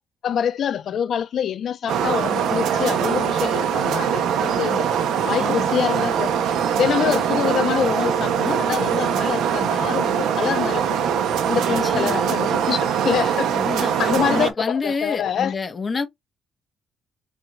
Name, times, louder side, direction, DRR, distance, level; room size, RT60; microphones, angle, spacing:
voice 1, 0.2-4.9 5.2-6.3 6.7-11.1 11.5-15.6, left 8 dB, 65° left, 0.8 m, -25 dB
sound 1, 1.9-14.5, right 8 dB, 85° right, 0.8 m, -22 dB
voice 2, 11.7-12.2 13.5-16.1, left 4 dB, 35° left, 1.1 m, -28 dB
4.3 x 3.5 x 2.4 m
cardioid pair, 90°, 0 cm